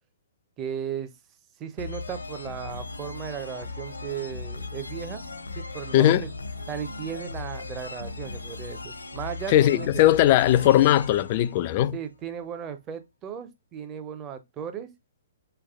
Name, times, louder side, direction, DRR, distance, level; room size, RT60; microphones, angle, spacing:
voice 1, 0.6-1.1 1.6-5.2 5.6-6.3 6.7-10.0 11.9-14.9, right 8 dB, 25° right, 0.7 m, -36 dB
sound 1, 1.8-12.4, left 3 dB, 85° left, 0.6 m, -38 dB
voice 2, 5.9-6.3 9.5-12.0, left 13 dB, 40° left, 0.4 m, -19 dB
3.9 x 3.3 x 3.7 m
hypercardioid pair, 130°, 0 cm